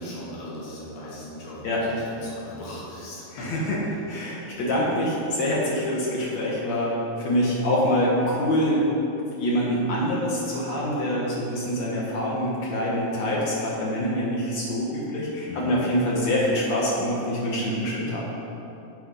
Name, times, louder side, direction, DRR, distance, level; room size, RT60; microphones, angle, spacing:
voice 1, 0.0-4.0 15.4-15.7, equal, 80° left, -7 dB, 3.4 m, -38 dB
voice 2, 3.3-3.6 4.1-8.8 9.4-18.2, equal, 65° left, -5 dB, 1.9 m, -25 dB
8.0 x 4.4 x 5.0 m, 2.8 s
omnidirectional pair, 4.0 m